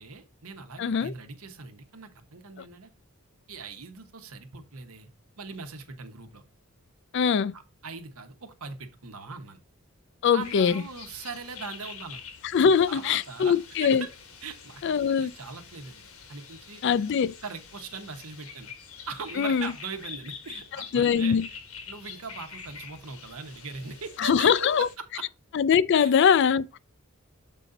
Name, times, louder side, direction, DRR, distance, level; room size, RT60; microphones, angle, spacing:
voice 1, 0.0-2.9 3.5-5.1 5.4-6.4 7.5-9.6 10.3-12.2 12.9-14.1 14.4-14.8 15.1-17.0 17.4-18.7 19.1-21.4 21.9-25.2 26.0-26.1, right 4 dB, 85° right, 1.1 m, -40 dB
voice 2, 0.8-1.1 7.1-7.5 10.2-10.8 12.5-14.0 14.8-15.3 16.8-17.3 19.4-19.7 20.9-21.5 24.2-24.9 25.5-26.8, left 7 dB, 55° left, 0.3 m, -22 dB
sound 1, 10.4-25.0, left 6 dB, 85° left, 1.4 m, -46 dB
7.5 x 4.0 x 3.9 m
head